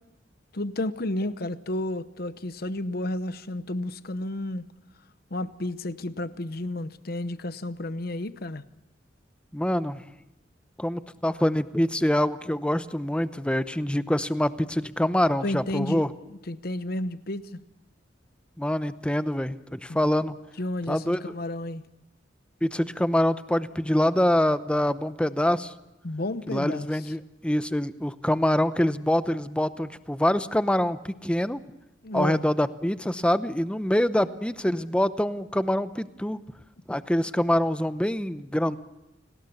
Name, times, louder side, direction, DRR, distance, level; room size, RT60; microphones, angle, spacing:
voice 1, 0.5-4.6 5.3-8.6 15.4-16.0 16.3-17.6 19.9-20.0 20.6-21.8 26.0-27.1 32.0-32.5, left 1 dB, 55° left, 0.9 m, -32 dB
voice 2, 9.5-10.0 10.8-16.1 18.6-20.4 20.9-21.2 22.6-25.7 26.5-31.6 32.1-36.4 36.9-38.8, left 1 dB, 5° left, 0.7 m, -25 dB
29.0 x 19.5 x 7.1 m
head